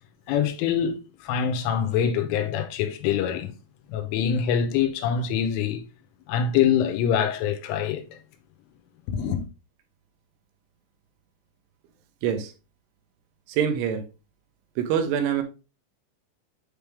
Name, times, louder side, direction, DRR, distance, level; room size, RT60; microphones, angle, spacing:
voice 1, 0.3-1.0 1.2-3.5 3.9-5.8 6.3-8.0 9.1-9.4, left 8 dB, 85° left, 3.4 m, -24 dB
voice 2, 12.2-12.5 13.5-14.1 14.8-15.4, right 8 dB, 85° right, 3.4 m, -25 dB
8.7 x 3.5 x 3.4 m
omnidirectional pair, 5.6 m